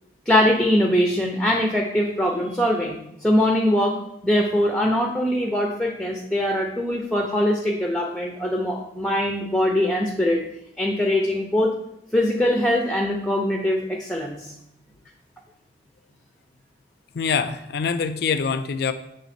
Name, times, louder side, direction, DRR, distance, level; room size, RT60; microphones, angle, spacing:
voice 1, 0.3-4.0 4.2-10.4 10.8-11.7 12.1-14.5, left 1 dB, 5° left, 1 dB, 0.5 m, -22 dB
voice 2, 17.1-18.9, left 6 dB, 55° left, 11 dB, 0.4 m, -24 dB
7.0 x 3.3 x 4.2 m, 0.80 s
head